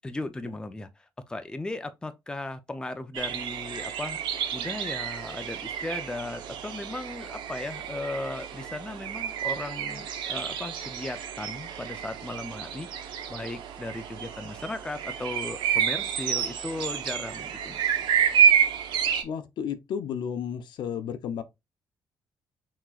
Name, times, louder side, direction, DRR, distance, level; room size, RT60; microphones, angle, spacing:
voice 1, 0.0-4.2 4.5-17.9, left 2 dB, 10° left, 0.5 m, -37 dB
sound 1, 3.1-19.2, right 8 dB, 90° right, 0.8 m, -29 dB
voice 2, 19.2-21.4, left 8 dB, 70° left, 0.7 m, -32 dB
5.9 x 3.0 x 2.4 m
cardioid pair, 115°, 8 cm